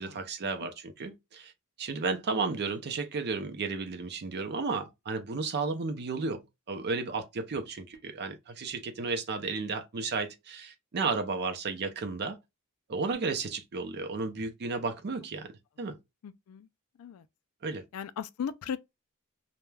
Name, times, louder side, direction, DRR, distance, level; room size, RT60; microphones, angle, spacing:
voice 1, 0.0-1.5 1.8-12.4 12.9-16.0 17.6-17.9, right 4 dB, 50° right, 0.5 m, -33 dB
voice 2, 16.2-16.7 17.0-17.2 17.9-18.8, left 7 dB, 70° left, 0.3 m, -37 dB
2.2 x 2.1 x 3.1 m
head